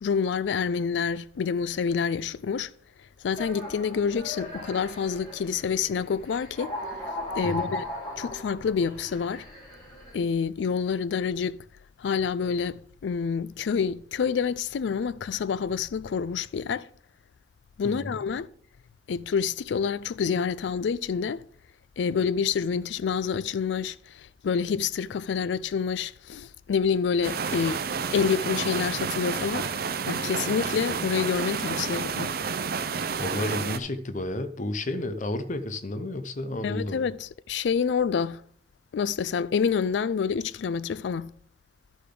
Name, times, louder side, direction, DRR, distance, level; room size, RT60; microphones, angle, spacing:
voice 1, 0.0-2.7 3.2-6.7 7.4-7.8 8.2-9.5 10.1-11.6 12.0-16.9 17.8-18.5 19.1-21.4 22.0-27.8 28.1-29.7 30.1-32.3 36.6-38.4 38.9-41.3, left 6 dB, 80° left, 0.4 m, -27 dB
sound 1, 3.3-10.1, left 1 dB, 30° left, 4.6 m, -38 dB
voice 2, 7.4-7.8 17.8-18.2 33.2-37.0, left 2 dB, 45° left, 0.7 m, -32 dB
sound 2, 27.2-33.8, right 5 dB, 55° right, 0.6 m, -30 dB
11.5 x 6.8 x 3.8 m
head